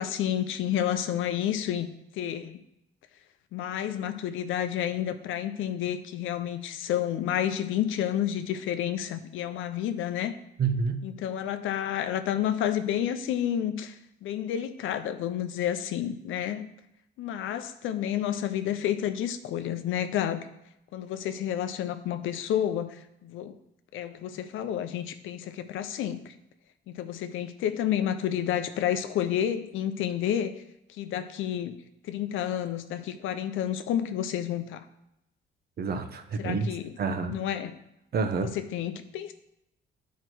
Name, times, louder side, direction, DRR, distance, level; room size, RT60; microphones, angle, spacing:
voice 1, 0.0-2.6 3.5-10.3 11.0-14.0 14.2-16.7 17.2-20.4 20.9-22.9 23.2-23.6 23.9-26.3 26.9-30.6 31.0-31.8 32.1-34.8 36.4-37.0 37.3-37.8 38.6-39.3, left 10 dB, 85° left, 9 dB, 0.6 m, -30 dB
voice 2, 10.6-11.0 35.8-36.7 37.0-37.4 38.1-38.5, right 4 dB, 50° right, 8 dB, 0.9 m, -28 dB
9.3 x 4.6 x 4.6 m, 0.84 s
cardioid pair, 90°, 20 cm